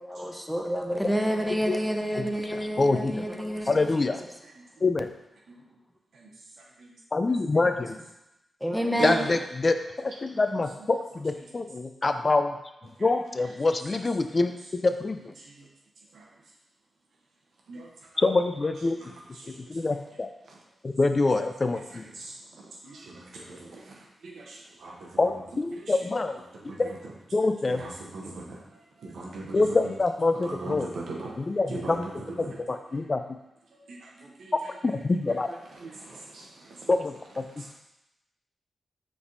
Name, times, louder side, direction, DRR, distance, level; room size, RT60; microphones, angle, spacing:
voice 1, 0.0-3.9 7.7-7.8 8.6-9.3, equal, ahead, 3 dB, 0.6 m, -29 dB
voice 2, 2.5-3.2 3.7-4.2 4.8-5.1 7.1-8.0 9.0-12.6 13.0-15.3 18.2-19.0 19.7-20.3 20.8-22.0 25.2-26.4 26.8-26.9 27.3-27.8 29.5-30.9 31.4-32.1 32.4-33.2 34.8-35.5 36.9-37.4, left 3 dB, 45° left, 7 dB, 0.3 m, -25 dB
voice 3, 8.9-9.4 15.4-15.7 16.1-16.3 17.7-18.2 19.0-19.8 21.9-25.2 25.7-26.0 26.6-27.0 27.7-29.7 30.3-31.4 31.7-32.6 33.7-34.7 35.2-36.9 37.6-37.7, right 3 dB, 80° right, -2 dB, 0.8 m, -39 dB
5.0 x 3.4 x 2.6 m, 0.90 s
cardioid pair, 50°, 0 cm